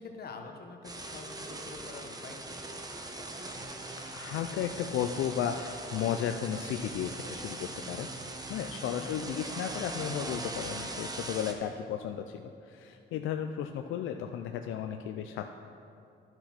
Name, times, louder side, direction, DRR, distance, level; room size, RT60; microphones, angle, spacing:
voice 1, 0.0-2.6 9.0-9.1, left 4 dB, 50° left, 4 dB, 1.2 m, -46 dB
sound 1, 0.8-11.5, right 2 dB, 20° right, 1.0 m, -40 dB
voice 2, 4.1-8.1 8.5-15.5, left 9 dB, 85° left, 6 dB, 0.4 m, -34 dB
10.5 x 6.1 x 5.9 m, 2.6 s
cardioid pair, 90°, 20 cm